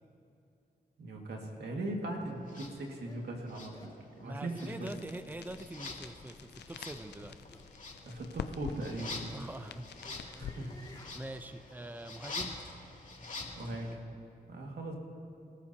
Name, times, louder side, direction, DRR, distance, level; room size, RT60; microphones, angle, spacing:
voice 1, 1.0-4.9 8.0-9.2 10.3-10.7 13.5-14.0 14.5-15.0, right 1 dB, 80° right, 0 dB, 2.1 m, -39 dB
sound 1, 1.5-1.6 2.2-2.4 3.0-3.2 3.7-4.0 4.6-4.8 5.4-5.5 6.5-6.8 7.5-7.7 8.3-8.4 8.9-11.2, left 2 dB, 25° left, 2.7 m, -57 dB
sound 2, 2.5-2.7 3.5-4.2 4.5-13.9, left 3 dB, 50° left, 2.7 m, -46 dB
voice 2, 4.2-7.4 9.3-9.9 11.1-12.6, right 1 dB, 10° right, 9 dB, 0.7 m, -44 dB
sound 3, 4.9-11.4, left 8 dB, 85° left, 0.5 m, -47 dB
27.0 x 13.5 x 2.9 m, 2.7 s
cardioid pair, 55°, 17 cm